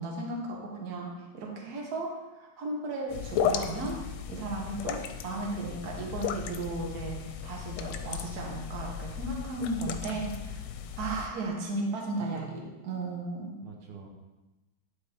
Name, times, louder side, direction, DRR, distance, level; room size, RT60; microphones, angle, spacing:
voice 1, 0.0-10.6 11.0-13.5, right 2 dB, 50° right, -1 dB, 1.6 m, -35 dB
sound 1, 3.1-11.3, left 8 dB, 85° left, 1.5 m, -35 dB
voice 2, 9.9-10.4 12.2-12.5 13.6-14.1, right 5 dB, 90° right, 0 dB, 1.9 m, -46 dB
11.0 x 4.3 x 3.4 m, 1.1 s
omnidirectional pair, 2.3 m